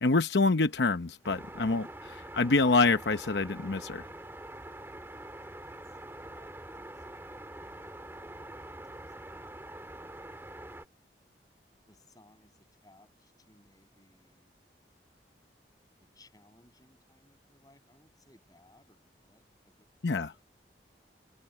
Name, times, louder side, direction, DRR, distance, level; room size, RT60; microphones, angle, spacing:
voice 1, 0.0-4.1 20.0-20.3, left 3 dB, 80° left, 0.8 m, -26 dB
sound 1, 1.2-10.9, right 1 dB, 15° right, 2.4 m, -45 dB
voice 2, 5.1-7.1 8.4-10.3 11.9-14.5 16.1-20.4, left 1 dB, 20° left, 7.3 m, -64 dB
head